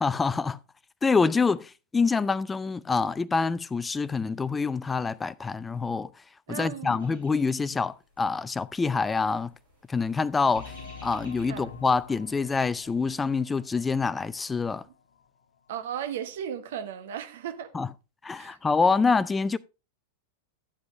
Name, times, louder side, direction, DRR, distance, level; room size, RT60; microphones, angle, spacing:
voice 1, 0.0-0.6 1.0-6.1 6.5-9.5 9.9-10.7 11.0-14.8 17.7-17.9 18.2-19.6, left 4 dB, 15° left, 0.4 m, -26 dB
voice 2, 6.5-7.1 11.5-11.7 15.7-17.7 18.3-18.6, right 9 dB, 60° right, 1.1 m, -36 dB
sound 1, 7.0-13.4, right 1 dB, 85° right, 5.6 m, -57 dB
sound 2, 10.6-14.8 15.2-15.3 15.8-15.9, left 4 dB, 70° left, 0.8 m, -47 dB
11.5 x 7.8 x 3.1 m
figure-of-eight pair, 90°, 0 cm